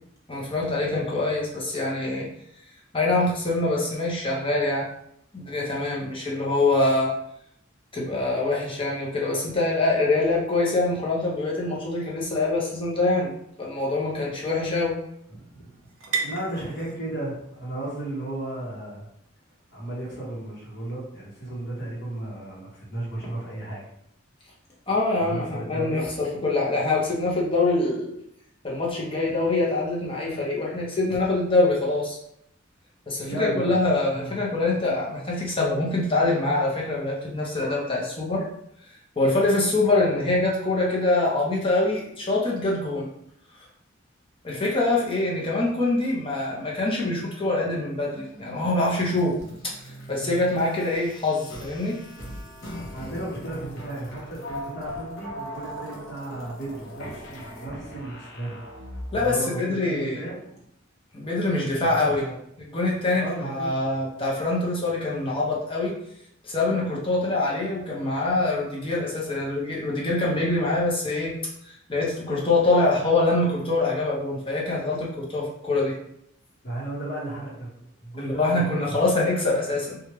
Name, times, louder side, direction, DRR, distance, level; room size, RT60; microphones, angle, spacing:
voice 1, 0.3-2.3 2.9-4.9 5.3-7.1 7.9-13.3 13.6-14.9 24.9-28.1 28.6-32.2 33.1-38.4 39.2-43.1 44.4-49.3 49.8-52.0 59.1-60.2 61.1-62.2 62.6-65.9 66.4-71.3 71.6-75.9 78.2-80.0, left 2 dB, 25° left, -4 dB, 0.7 m, -24 dB
sound 1, 13.0-20.4, right 5 dB, 75° right, 0.6 m, -39 dB
voice 2, 15.3-15.8 16.2-19.1 19.7-23.8 25.2-26.0 33.2-33.8 34.1-34.4 52.9-58.6 59.1-60.6 61.8-62.3 63.1-63.8 76.6-79.0, right 1 dB, 55° left, -4 dB, 1.0 m, -34 dB
sound 2, 48.1-59.4, equal, 80° left, 0.8 m, -39 dB
3.1 x 2.3 x 3.0 m, 0.73 s
head